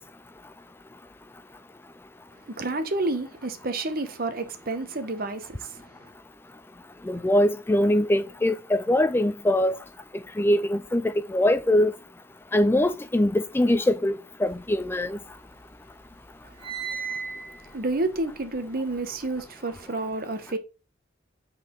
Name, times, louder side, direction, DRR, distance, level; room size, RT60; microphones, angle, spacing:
voice 1, 2.6-5.7 16.6-16.7 17.7-20.6, right 2 dB, 50° right, 1.0 m, -29 dB
voice 2, 7.0-9.8 10.4-11.9 12.5-15.2, left 1 dB, 10° left, 0.3 m, -22 dB
sound 1, 14.6-15.7 16.0-19.4, right 6 dB, 30° right, 1.4 m, -38 dB
8.6 x 4.2 x 3.8 m
head